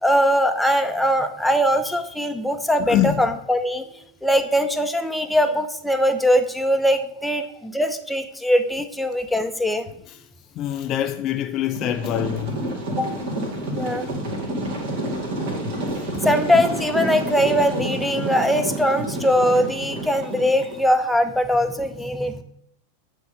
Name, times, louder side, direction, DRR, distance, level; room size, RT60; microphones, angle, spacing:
voice 1, 0.0-3.8 4.2-9.9 13.0-13.1 13.8-14.1 16.2-22.4, equal, ahead, 0.7 m, -21 dB
voice 2, 2.8-3.2 10.6-12.8 16.1-16.2, left 12 dB, 35° left, 0.4 m, -25 dB
sound 1, 11.7-20.8, right 1 dB, 50° right, 2.1 m, -28 dB
9.3 x 3.5 x 6.3 m
figure-of-eight pair, 90°, 0 cm